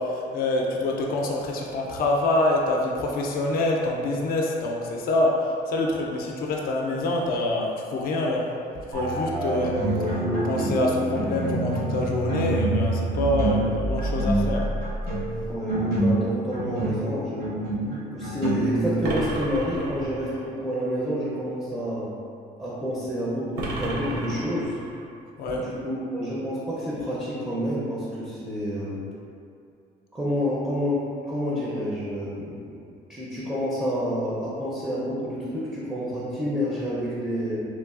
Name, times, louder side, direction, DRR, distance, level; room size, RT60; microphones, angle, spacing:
voice 1, 0.0-8.5 8.9-9.8 10.4-14.7 25.4-25.6, left 2 dB, 60° left, -1 dB, 0.4 m, -26 dB
sound 1, 8.9-15.6, right 2 dB, 50° right, 0.7 m, -29 dB
sound 2, 9.6-10.9 11.1-19.3, right 1 dB, 70° right, 1.4 m, -27 dB
voice 2, 15.5-17.6 18.0-22.1 22.6-24.8 25.5-29.0 30.1-32.8 33.1-37.6, equal, 10° right, -8 dB, 0.5 m, -29 dB
sound 3, 19.0-20.5 23.6-25.1, right 1 dB, 85° right, 0.5 m, -32 dB
3.1 x 2.3 x 2.3 m, 2.5 s
cardioid pair, 110°, 17 cm